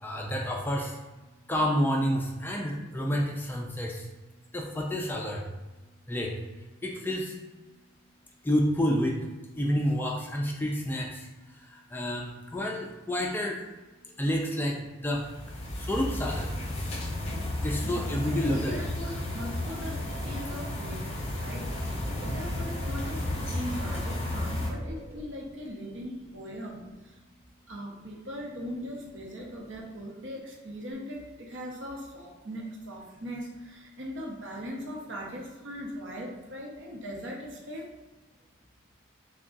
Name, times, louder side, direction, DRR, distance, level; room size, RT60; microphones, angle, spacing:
voice 1, 0.0-1.0 1.5-4.1 4.5-5.4 6.1-6.3 6.8-7.4 8.4-9.2 9.6-13.6 14.2-15.3 15.8-16.5 17.6-18.8, equal, 10° left, -1 dB, 0.3 m, -29 dB
sound 1, 15.1-24.7, left 1 dB, 30° left, 0.7 m, -33 dB
sound 2, 17.2-18.8 19.4-20.9 21.6-23.1 23.7-25.3, right 1 dB, 10° right, 0.7 m, -48 dB
voice 2, 17.8-21.1 21.4-27.2 27.7-37.9, equal, 65° right, -2 dB, 0.8 m, -40 dB
3.5 x 2.3 x 3.8 m, 1.2 s
head